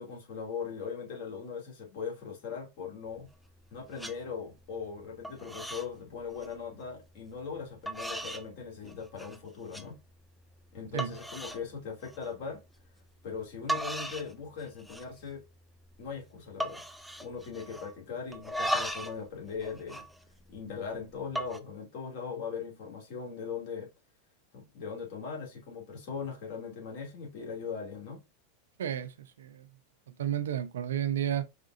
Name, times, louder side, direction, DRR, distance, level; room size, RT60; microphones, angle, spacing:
voice 1, 0.0-3.3 3.7-10.0 10.7-12.6 13.2-15.4 16.0-16.8 17.2-20.1 20.5-23.9 24.5-28.2, left 6 dB, 55° left, 2.5 m, -39 dB
sound 1, 3.1-3.7 3.9-4.2 4.6-5.0 5.2-5.9 6.2-6.5 7.3-7.4 7.9-8.5 8.9-9.4 9.7-9.9 10.4-10.5 11.0-11.6 12.0-12.3 13.4-13.5 13.7-14.3 14.6-15.2 15.5-15.6 15.8-16.2 16.6-18.0 18.3-19.2 19.5-20.7 21.2-21.6, equal, ahead, 0.6 m, -37 dB
voice 2, 28.8-29.1 29.4-29.6 30.2-31.4, right 10 dB, 80° right, 0.6 m, -31 dB
5.0 x 3.7 x 2.6 m
hypercardioid pair, 100°, 0 cm